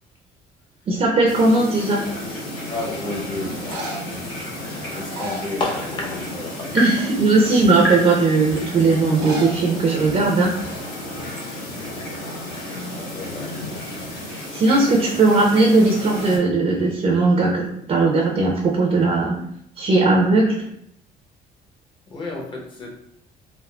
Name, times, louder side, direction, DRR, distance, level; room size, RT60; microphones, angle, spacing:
voice 1, 0.9-2.0 2.3-2.4 6.7-10.7 14.5-19.4 19.8-20.5, right 3 dB, 40° right, -1 dB, 0.5 m, -18 dB
sound 1, 1.3-16.4, left 1 dB, 75° left, 1.3 m, -31 dB
voice 2, 2.7-3.9 5.0-6.8 11.8-12.1 12.5-13.5 22.1-23.0, left 2 dB, 30° left, -2 dB, 0.8 m, -31 dB
sound 2, 3.6-4.2 4.9-6.1 6.4-6.8 7.4-7.5 9.0-9.6 9.9-10.0 10.2-10.3 11.0-11.3 11.5-12.7 16.7-17.3, equal, 80° right, 0.7 m, -36 dB
3.4 x 2.0 x 2.3 m, 0.73 s
cardioid pair, 110°, 17 cm